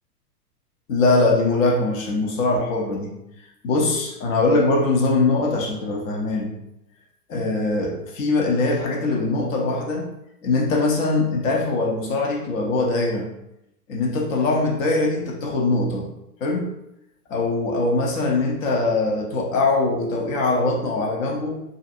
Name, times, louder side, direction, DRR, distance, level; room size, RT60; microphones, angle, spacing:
voice 1, 0.9-3.1 3.6-6.5 7.3-10.1 10.4-13.3 13.9-16.1 16.4-16.7 17.3-21.6, left 3 dB, 55° left, 0 dB, 0.9 m, -22 dB
2.6 x 2.5 x 2.4 m, 0.83 s
hypercardioid pair, 105°, 48 cm